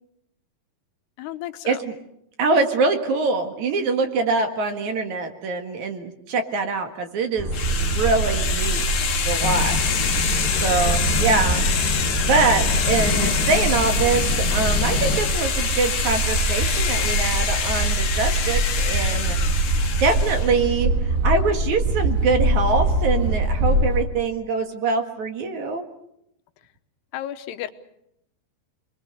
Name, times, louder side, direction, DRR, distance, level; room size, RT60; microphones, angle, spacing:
voice 1, 1.2-1.8 27.1-27.7, left 12 dB, 90° left, 9 dB, 3.1 m, -33 dB
voice 2, 2.4-8.8 9.2-9.9 10.6-11.6 12.3-19.4 20.0-25.8, right 4 dB, 55° right, 5 dB, 2.7 m, -24 dB
sound 1, 7.4-24.1, right 2 dB, 40° right, 1.2 m, -24 dB
sound 2, 7.5-20.6, left 7 dB, 50° left, 2.3 m, -26 dB
sound 3, 9.4-15.2, left 8 dB, 65° left, 2.8 m, -30 dB
28.0 x 21.5 x 6.6 m, 0.78 s
omnidirectional pair, 4.5 m